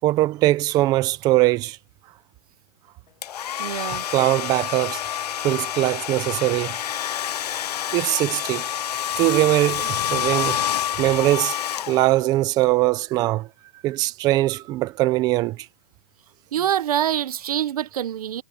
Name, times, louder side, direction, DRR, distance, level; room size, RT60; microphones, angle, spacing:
voice 1, 0.0-1.8 4.1-5.1 5.4-6.8 7.9-8.7 9.2-10.6 10.9-11.6 11.9-13.5 13.8-15.7, right 17 dB, 20° right, 0.9 m, -21 dB
Domestic sounds home sounds, 3.2-12.4, left 10 dB, 70° left, 0.7 m, -28 dB
voice 2, 3.6-4.1 16.5-18.4, right 10 dB, 60° right, 1.1 m, -25 dB
hypercardioid pair, 165°, 21 cm